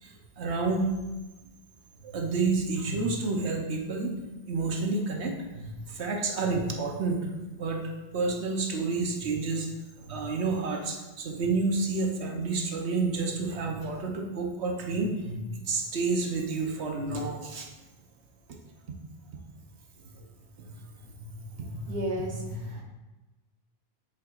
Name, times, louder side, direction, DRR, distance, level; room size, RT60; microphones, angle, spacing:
voice 1, 0.0-0.9 2.0-4.1 4.5-7.2 7.5-9.7 10.0-17.7 20.6-20.7 21.0-22.0, right 3 dB, 90° right, 1 dB, 1.1 m, -30 dB
voice 2, 21.8-22.8, equal, 45° right, 0 dB, 1.2 m, -34 dB
7.7 x 7.1 x 2.4 m, 1.1 s
omnidirectional pair, 1.1 m